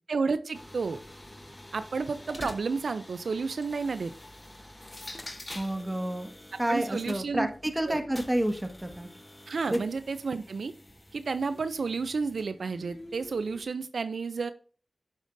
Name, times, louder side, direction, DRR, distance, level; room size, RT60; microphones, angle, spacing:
voice 1, 0.1-1.0 1.7-4.1 6.7-7.5 7.9-8.0 9.5-10.7 11.1-14.5, right 4 dB, 90° right, 12 dB, 0.4 m, -31 dB
sound 1, 0.5-13.6, left 1 dB, 30° left, 1.1 m, -48 dB
sound 2, 3.4-5.9 6.8-8.9, left 2 dB, 50° left, 2.2 m, -48 dB
voice 2, 5.5-6.3 6.6-9.1 9.7-9.8, right 1 dB, 20° right, 6 dB, 1.5 m, -29 dB
8.6 x 7.2 x 2.6 m, 0.42 s
cardioid pair, 40°, 0 cm